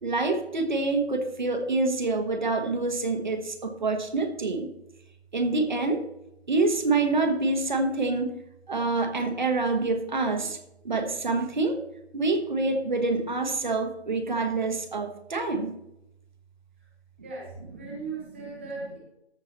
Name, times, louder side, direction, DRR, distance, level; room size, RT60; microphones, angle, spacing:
voice 1, 0.0-4.7 5.3-6.0 6.5-8.3 8.7-10.6 10.8-11.8 12.1-15.8 17.8-18.0, right 3 dB, 45° right, 6 dB, 1.3 m, -26 dB
voice 2, 17.2-19.0, right 4 dB, 10° right, -6 dB, 0.9 m, -38 dB
14.0 x 4.7 x 4.1 m, 0.84 s
figure-of-eight pair, 165°, 34 cm